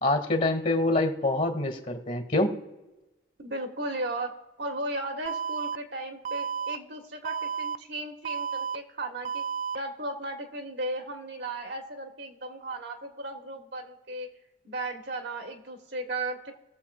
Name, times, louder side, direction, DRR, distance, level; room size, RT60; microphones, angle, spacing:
voice 1, 0.0-2.5, left 2 dB, 45° left, 5 dB, 1.6 m, -25 dB
voice 2, 3.4-4.3 4.6-9.4 9.7-14.3 14.6-16.5, right 2 dB, 65° right, 4 dB, 1.3 m, -35 dB
Alarm, 5.3-5.8 6.3-6.8 7.3-7.8 8.3-8.8 9.3-9.8, right 7 dB, 40° right, 0.3 m, -32 dB
21.0 x 7.2 x 2.4 m, 1.0 s
head